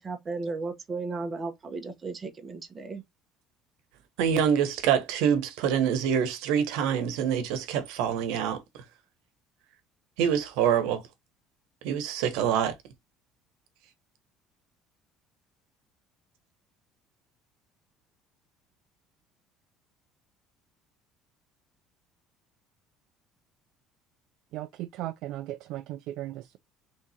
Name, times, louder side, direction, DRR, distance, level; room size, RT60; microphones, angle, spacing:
voice 1, 0.0-3.0, right 3 dB, 20° right, 0.8 m, -35 dB
voice 2, 4.2-8.6 10.2-11.0 11.8-12.7, right 8 dB, 85° right, 1.0 m, -25 dB
voice 3, 24.5-26.6, right 14 dB, 65° right, 0.4 m, -37 dB
3.6 x 2.8 x 4.1 m
cardioid pair, 150°, 0 cm